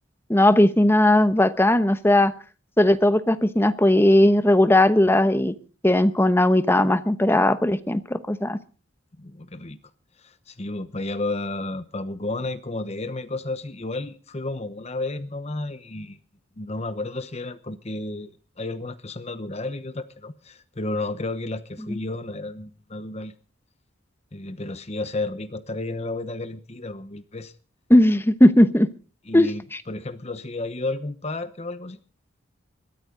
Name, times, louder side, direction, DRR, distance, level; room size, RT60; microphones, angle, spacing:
voice 1, 0.3-2.3 2.8-5.5 5.8-8.6 21.9-22.0 27.9-28.9 29.3-29.8, left 1 dB, 10° left, 12 dB, 1.0 m, -18 dB
voice 2, 9.2-9.8 10.2-16.2 16.6-18.3 18.6-23.3 24.3-27.5 29.3-29.6 29.9-32.0, left 2 dB, 30° left, 11 dB, 1.0 m, -32 dB
21.5 x 14.0 x 3.9 m, 0.38 s
head